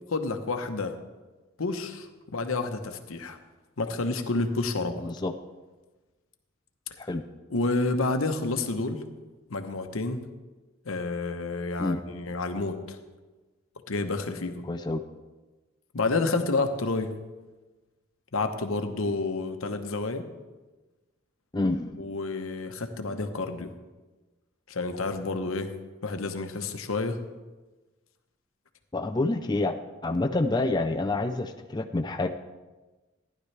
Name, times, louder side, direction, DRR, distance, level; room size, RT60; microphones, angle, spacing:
voice 1, 0.1-1.0 1.6-3.4 3.8-5.1 7.5-9.0 9.5-10.2 10.8-13.0 13.9-14.6 15.9-17.1 18.3-20.3 22.0-23.7 24.7-25.7 26.0-27.2, left 3 dB, 85° left, 7 dB, 0.9 m, -29 dB
voice 2, 5.0-5.3 7.0-7.3 11.8-12.0 14.6-15.0 21.5-22.0 28.9-29.8 30.0-32.3, left 2 dB, 20° left, 5 dB, 0.4 m, -28 dB
15.0 x 11.0 x 3.3 m, 1.2 s
head